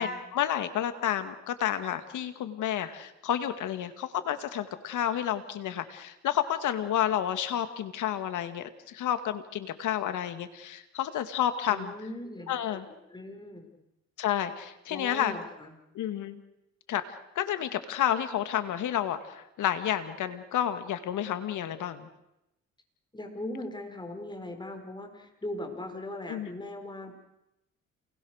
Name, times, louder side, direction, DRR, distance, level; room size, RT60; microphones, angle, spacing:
voice 1, 0.0-11.9 12.5-12.9 14.2-15.3 15.9-16.4 16.9-17.0 17.4-22.1 26.3-26.5, left 10 dB, 80° left, 10 dB, 2.2 m, -30 dB
voice 2, 11.7-13.7 14.9-15.8 23.1-27.1, left 1 dB, 15° left, 4 dB, 5.5 m, -39 dB
28.5 x 20.5 x 6.6 m, 0.89 s
cardioid pair, 90°, 30 cm